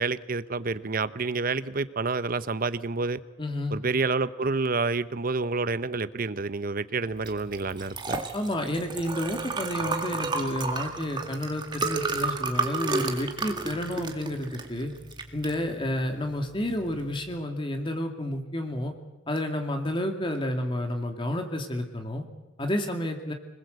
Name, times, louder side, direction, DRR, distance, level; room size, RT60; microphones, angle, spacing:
voice 1, 0.0-3.2 3.7-8.2, right 4 dB, 45° right, 15 dB, 0.9 m, -28 dB
voice 2, 3.4-3.8 8.3-14.9 15.3-18.9 19.3-22.2 22.6-23.3, left 1 dB, 25° left, 4 dB, 2.4 m, -30 dB
Liquid, 7.2-17.4, right 3 dB, 25° right, 2.1 m, -32 dB
26.0 x 20.5 x 8.1 m, 1.0 s
head